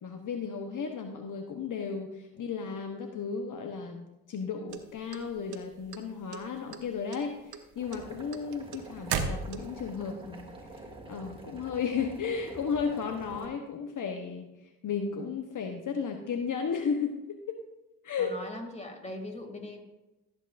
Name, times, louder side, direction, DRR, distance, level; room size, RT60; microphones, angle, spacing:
voice 1, 0.0-10.5 11.1-14.5 14.8-17.6 18.0-18.3, left 6 dB, 60° left, 4 dB, 1.1 m, -34 dB
sound 1, 4.7-6.0 6.3-6.8 7.1-9.9, right 6 dB, 85° right, 1.0 m, -34 dB
Boiling, 7.8-13.5, right 2 dB, 15° right, 2.7 m, -47 dB
voice 2, 18.2-19.8, left 1 dB, 20° left, 3 dB, 2.5 m, -40 dB
15.5 x 8.1 x 2.6 m, 0.98 s
supercardioid pair, 55°, 36 cm